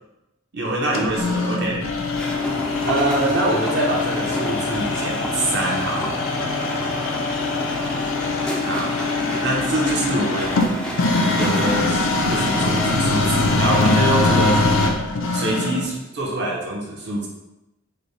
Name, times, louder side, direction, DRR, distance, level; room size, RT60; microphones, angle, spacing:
voice 1, 0.5-1.8 2.8-6.2 8.6-9.0 9.4-10.7 11.4-14.6 15.3-17.3, right 1 dB, 50° right, -2 dB, 0.8 m, -24 dB
sound 1, 0.9-15.9, left 3 dB, 75° left, 0.5 m, -23 dB
sound 2, 2.1-14.9, equal, 5° left, 0.3 m, -30 dB
5.0 x 2.2 x 3.2 m, 0.95 s
head